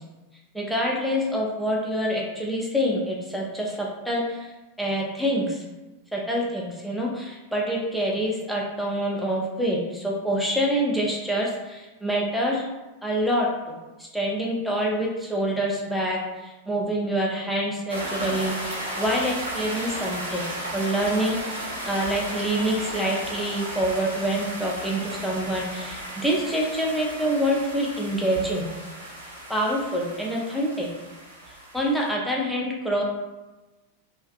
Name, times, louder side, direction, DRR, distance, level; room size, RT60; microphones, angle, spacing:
voice 1, 0.5-4.5 4.8-5.6 6.1-12.6 13.0-13.7 14.0-20.4 20.7-28.6 29.5-30.9 31.5-33.0, equal, ahead, -3 dB, 0.4 m, -26 dB
sound 1, 17.9-32.1, right 1 dB, 75° right, 0.6 m, -35 dB
2.5 x 2.4 x 2.4 m, 1.1 s
figure-of-eight pair, 90°, 0 cm